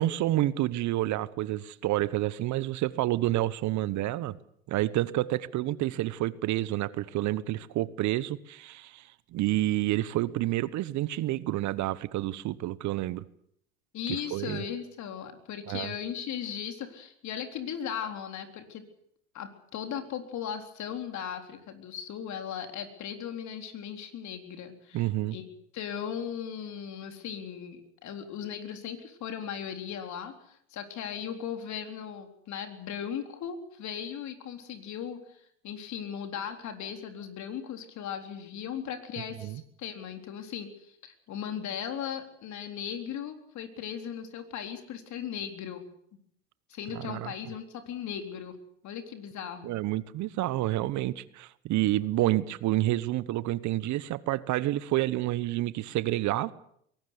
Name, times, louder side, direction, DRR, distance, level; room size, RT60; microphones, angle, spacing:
voice 1, 0.0-4.4 4.7-13.2 14.1-14.6 15.7-15.9 24.9-25.4 39.4-39.6 46.9-47.3 49.6-56.5, right 15 dB, 55° right, 18 dB, 1.1 m, -29 dB
voice 2, 13.9-18.8 19.3-25.4 25.7-45.8 46.7-48.6 48.8-49.8, left 8 dB, 55° left, 6 dB, 3.9 m, -37 dB
22.5 x 18.5 x 8.2 m, 0.70 s
hypercardioid pair, 80°, 35 cm